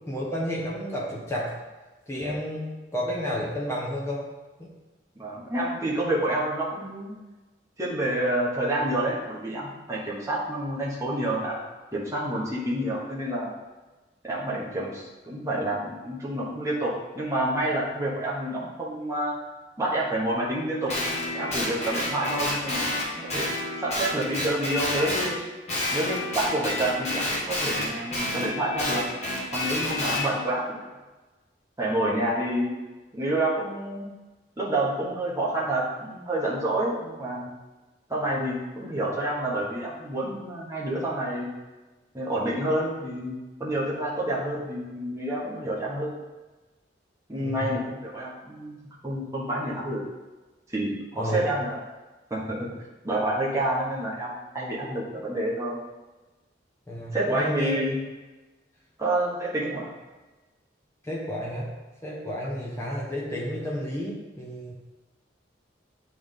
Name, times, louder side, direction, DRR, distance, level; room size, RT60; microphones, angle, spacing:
voice 1, 0.0-1.5 2.1-4.2 4.6-4.7 47.3-47.7 51.1-51.4 56.9-57.8 61.0-61.7 62.0-64.7, equal, 15° left, -5 dB, 1.3 m, -31 dB
voice 2, 5.1-7.1 7.8-11.6 11.9-13.5 14.2-19.4 19.8-22.9 23.3-23.5 23.8-25.4 25.9-29.0 29.5-30.9 31.8-32.7 33.1-34.1 34.6-37.5 38.1-41.5 42.1-46.1 47.3-48.8 49.0-50.0 50.7-51.8 52.3-52.7 53.0-55.8 57.1-58.0 59.0-59.9, right 1 dB, 15° right, -6 dB, 1.3 m, -28 dB
Guitar, 20.9-25.3 25.7-30.3, left 1 dB, 35° left, 1.4 m, -29 dB
8.7 x 3.5 x 3.8 m, 1.2 s
head